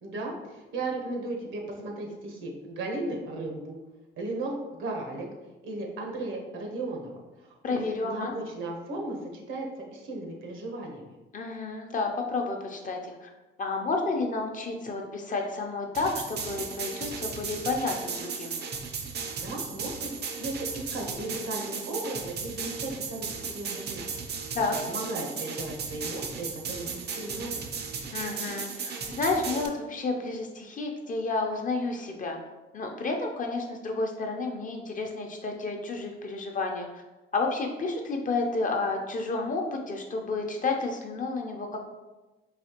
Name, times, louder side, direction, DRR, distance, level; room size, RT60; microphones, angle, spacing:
voice 1, 0.0-3.8 4.2-5.3 5.6-7.1 7.4-9.6 9.9-11.1 19.4-24.2 24.8-27.6, right 2 dB, 80° right, 1 dB, 0.9 m, -36 dB
voice 2, 7.6-8.3 11.3-13.3 13.6-18.6 24.5-24.8 28.1-32.4 32.7-37.0 37.3-41.8, left 3 dB, 40° left, 2 dB, 0.7 m, -31 dB
sound 1, 15.9-29.7, right 5 dB, 55° right, 0.5 m, -36 dB
4.1 x 2.8 x 2.9 m, 1.1 s
cardioid pair, 90°, 20 cm